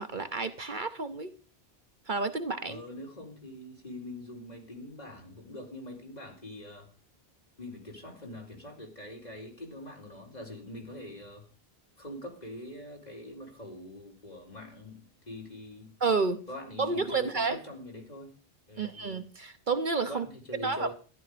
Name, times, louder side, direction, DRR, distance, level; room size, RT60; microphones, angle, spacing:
voice 1, 0.0-1.3 2.1-2.8 16.0-16.4 16.8-17.6 18.8-20.3 20.6-20.9, right 4 dB, 50° right, 9 dB, 1.1 m, -30 dB
voice 2, 2.6-6.9 7.6-11.5 12.0-15.9 16.5-18.3 18.7-19.2 20.1-20.9, left 1 dB, 40° left, 0 dB, 4.3 m, -44 dB
14.5 x 11.0 x 5.1 m, 0.37 s
omnidirectional pair, 1.1 m